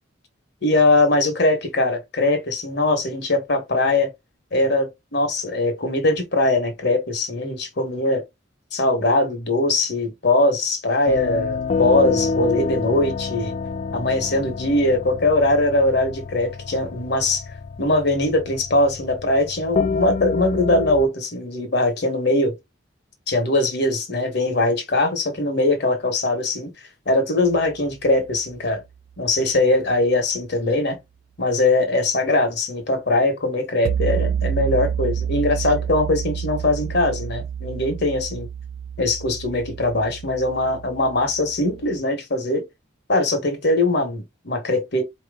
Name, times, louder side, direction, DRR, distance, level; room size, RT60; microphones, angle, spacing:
voice 1, 0.6-4.1 4.5-8.2 8.7-13.5 13.9-17.4 17.8-22.6 23.3-26.7 27.1-28.8 29.2-31.0 31.4-38.5 39.0-42.6 43.1-45.0, left 2 dB, 55° left, 1.4 m, -21 dB
sound 1, 11.1-21.1, left 4 dB, 35° left, 0.3 m, -28 dB
sound 2, 27.5-27.9 33.8-42.0, right 8 dB, 85° right, 0.3 m, -28 dB
4.4 x 3.0 x 3.6 m
head